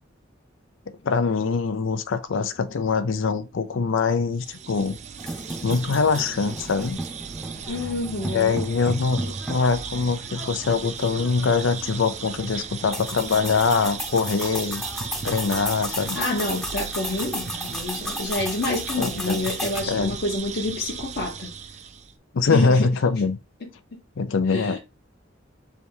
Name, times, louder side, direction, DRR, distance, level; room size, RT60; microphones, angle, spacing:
voice 1, 1.0-5.0 5.6-7.0 8.3-14.8 15.2-16.2 19.0-19.4 19.9-20.2 22.3-23.4 24.2-24.8, left 4 dB, 75° left, 0.5 m, -23 dB
sound 1, 4.4-22.1, right 6 dB, 35° right, 0.4 m, -37 dB
sound 2, 5.2-19.8, equal, ahead, 0.8 m, -34 dB
voice 2, 7.7-8.6 15.9-21.5 22.5-23.0 23.6-24.0 24.5-24.8, left 2 dB, 55° left, 0.9 m, -29 dB
3.4 x 2.7 x 4.5 m
head